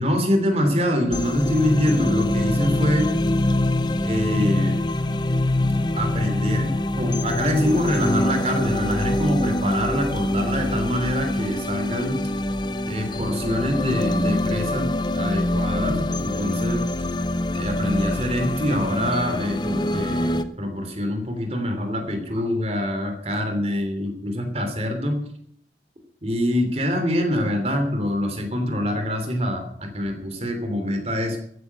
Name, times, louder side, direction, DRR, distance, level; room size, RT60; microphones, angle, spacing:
voice 1, 0.0-3.1 4.0-4.8 6.0-12.2 12.9-16.8 17.5-25.2 26.2-31.4, left 1 dB, 35° right, 5 dB, 3.0 m, -25 dB
sound 1, 1.1-20.4, left 1 dB, 25° left, 0.7 m, -24 dB
14.5 x 9.5 x 8.1 m, 0.66 s
head